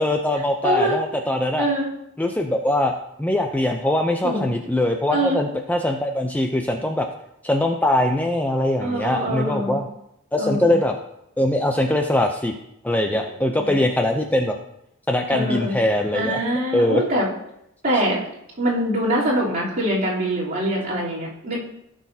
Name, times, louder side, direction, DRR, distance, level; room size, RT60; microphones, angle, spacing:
voice 1, 0.0-1.7 2.2-7.1 7.4-9.9 10.3-10.9 11.4-12.5 12.8-14.6 15.1-16.4 16.7-17.0, left 1 dB, 5° left, 4 dB, 0.5 m, -22 dB
voice 2, 0.6-1.0 1.6-1.9 4.2-4.5 5.1-5.4 8.8-9.8 10.4-10.8 13.6-13.8 15.3-15.7 16.1-17.2 17.8-18.2 18.6-21.6, right 1 dB, 40° right, -7 dB, 3.2 m, -23 dB
16.0 x 6.3 x 2.7 m, 0.79 s
head